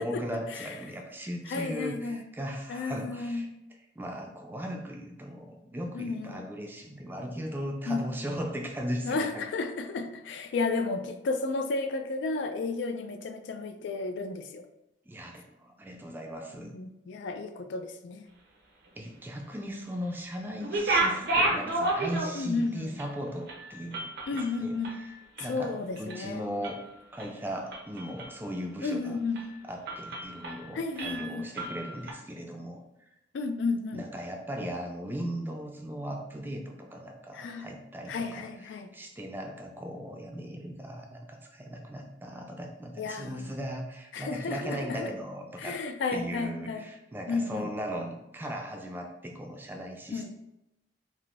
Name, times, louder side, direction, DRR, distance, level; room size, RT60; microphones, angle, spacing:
voice 1, 0.0-3.5 4.0-9.5 15.1-16.7 19.0-24.8 25.4-26.8 27.1-29.2 29.7-32.8 33.9-38.5 38.9-45.8 46.1-50.3, equal, 10° right, 2 dB, 0.3 m, -37 dB
voice 2, 1.5-2.2 2.7-3.5 5.9-6.5 7.9-8.0 9.0-14.7 16.7-18.2 22.3-23.0 24.3-25.0 25.4-26.4 28.8-29.4 30.7-31.5 33.3-34.1 37.3-37.7 38.1-38.9 43.0-43.5 44.1-45.1 45.6-46.8 47.3-47.7 50.1-50.3, left 3 dB, 75° left, 7 dB, 0.3 m, -32 dB
sound 1, 20.6-22.6 23.0-23.1 23.5-25.6 26.0-26.3 26.6-27.3 27.7-28.4 28.8-29.0 29.4-29.5 29.9-30.7 31.0-32.1, right 2 dB, 60° right, 0.5 m, -31 dB
3.4 x 2.5 x 2.5 m, 0.90 s
head